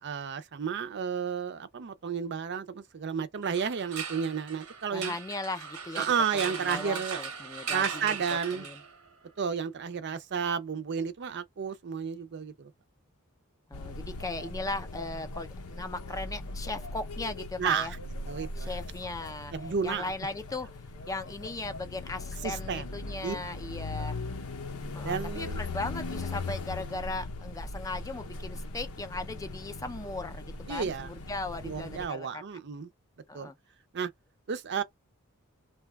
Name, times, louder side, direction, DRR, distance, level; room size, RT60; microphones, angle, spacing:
voice 1, 0.0-5.2 6.0-7.2 7.7-8.7 9.4-12.7 17.6-17.9 18.3-18.7 19.5-20.1 22.4-22.8 23.2-23.4 24.0-24.1 25.0-25.6 30.7-31.1 31.6-32.9 33.3-33.5 33.9-34.1 34.5-34.8, right 6 dB, 55° right, 0.5 m, -32 dB
sound 1, 3.4-9.1, right 6 dB, 90° right, 0.9 m, -38 dB
voice 2, 4.9-6.1 6.3-8.8 13.7-17.9 18.6-19.5 19.8-20.7 21.1-24.1 24.9-32.4 33.3-33.5, left 2 dB, 15° left, 0.4 m, -38 dB
sound 2, 13.7-32.1, left 2 dB, 85° left, 0.7 m, -39 dB
2.8 x 2.3 x 3.3 m
head